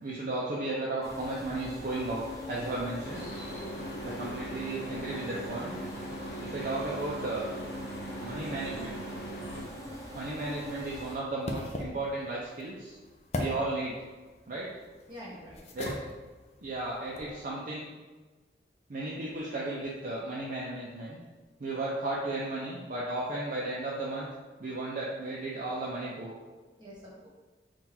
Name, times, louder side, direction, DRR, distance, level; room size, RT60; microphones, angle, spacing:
voice 1, 0.0-3.2 4.0-5.8 6.4-7.5 8.2-9.0 10.1-13.0 13.3-14.0 14.5-14.7 15.7-16.0 16.6-17.9 18.9-21.2 21.6-24.3 24.6-26.3, right 2 dB, 50° right, -5 dB, 0.5 m, -34 dB
sound 1, 1.0-11.2, left 1 dB, 20° left, 0.8 m, -42 dB
sound 2, 3.0-9.6, right 1 dB, 65° left, 0.8 m, -41 dB
voice 2, 3.5-4.2 9.5-9.8 15.1-15.6 26.8-27.3, equal, 25° right, -6 dB, 1.3 m, -48 dB
sound 3, 10.2-17.4, left 1 dB, 40° left, 0.4 m, -41 dB
3.8 x 2.4 x 4.3 m, 1.3 s
head